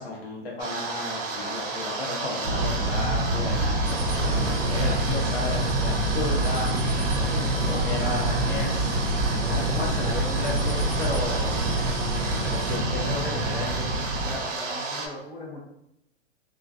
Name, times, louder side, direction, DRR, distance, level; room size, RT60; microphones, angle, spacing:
voice 1, 0.0-3.9 4.2-6.7 7.7-11.6 12.4-14.0, left 2 dB, 55° left, -3 dB, 0.9 m, -33 dB
sound 1, 0.6-15.1, right 3 dB, 90° right, 0.6 m, -32 dB
sound 2, 2.4-14.3, right 1 dB, 40° right, 0.9 m, -27 dB
sound 3, 3.8-12.8, right 2 dB, 85° left, 1.0 m, -34 dB
voice 2, 7.3-7.8 14.2-15.6, left 1 dB, 15° left, -7 dB, 0.8 m, -39 dB
2.4 x 2.3 x 2.3 m, 0.80 s
hypercardioid pair, 130°, 36 cm